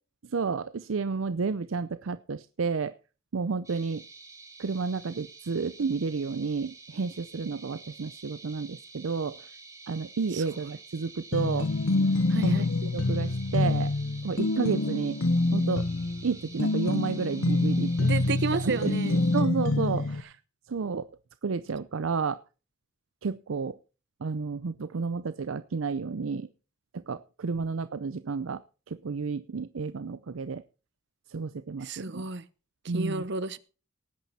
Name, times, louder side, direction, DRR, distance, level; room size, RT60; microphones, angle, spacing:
voice 1, 0.2-2.9 3.3-4.0 4.6-9.5 9.9-11.7 12.4-13.9 14.2-15.2 15.5-15.9 16.2-17.9 18.5-19.0 19.3-20.3 20.7-21.1 21.4-22.4 23.2-23.8 24.2-26.5 26.9-28.6 28.9-30.6 31.3-32.2 32.9-33.2, right 5 dB, 75° right, 13 dB, 0.6 m, -31 dB
sound 1, 3.6-19.4, right 3 dB, 15° right, 2.7 m, -49 dB
sound 2, 11.3-20.2, left 2 dB, 85° left, 0.9 m, -26 dB
voice 2, 12.3-12.7 18.0-19.2 27.6-27.7 31.8-32.4 32.9-33.6, right 3 dB, 60° right, 15 dB, 1.1 m, -32 dB
18.5 x 9.3 x 4.2 m, 0.35 s
head